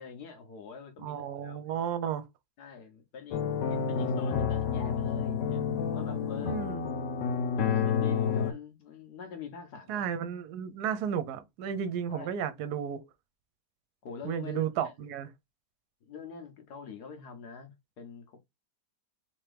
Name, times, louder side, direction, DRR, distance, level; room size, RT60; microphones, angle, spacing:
voice 1, 0.0-1.6 2.6-3.4 3.7-6.8 7.6-10.0 12.1-12.3 14.0-14.9 16.0-18.4, left 6 dB, 70° left, 1.5 m, -45 dB
voice 2, 1.0-2.2 6.4-6.9 9.9-13.0 14.2-15.3, right 8 dB, 70° right, 1.2 m, -33 dB
sound 1, 3.3-8.5, left 6 dB, 85° left, 1.3 m, -29 dB
3.5 x 2.9 x 3.2 m
omnidirectional pair, 1.8 m